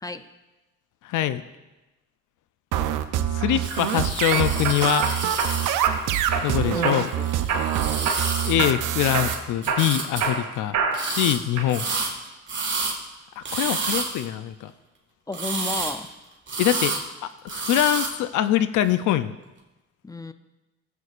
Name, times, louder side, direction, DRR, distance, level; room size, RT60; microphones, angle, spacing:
voice 1, 1.0-1.4 3.3-5.1 6.4-7.1 8.4-11.9 13.4-14.7 16.6-16.9 17.2-19.4, left 12 dB, 80° left, 13 dB, 0.5 m, -24 dB
sound 1, 2.7-9.3, right 11 dB, 90° right, 0.6 m, -25 dB
sound 2, 3.4-3.8 4.3-5.5 5.8-6.5 6.8-7.2 7.5-8.3 8.6-8.8 9.1-11.2 11.6-12.1, right 5 dB, 65° right, 2.2 m, -27 dB
sound 3, 3.6-9.4 9.6-10.3 10.9-11.4 11.7-13.0 13.4-14.3 15.3-16.1 16.5-17.1 17.5-18.1, right 4 dB, 40° right, 1.8 m, -30 dB
voice 2, 6.6-7.3 15.3-16.1 20.0-20.3, left 2 dB, 10° left, 11 dB, 0.5 m, -32 dB
15.5 x 8.2 x 2.5 m, 1.1 s
cardioid pair, 90°, 30 cm